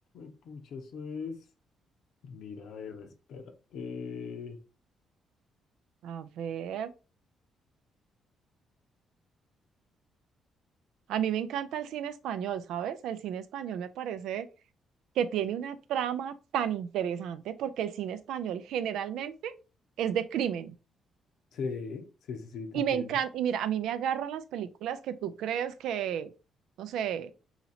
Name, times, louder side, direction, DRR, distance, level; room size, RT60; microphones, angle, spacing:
voice 1, 0.1-1.4 2.2-4.6 21.5-23.2, left 5 dB, 75° left, 0.7 m, -40 dB
voice 2, 6.0-6.9 11.1-14.5 15.2-19.5 20.0-20.8 22.7-26.3 26.8-27.3, right 9 dB, 85° right, 0.4 m, -32 dB
2.8 x 2.8 x 4.0 m
cardioid pair, 90°, 0 cm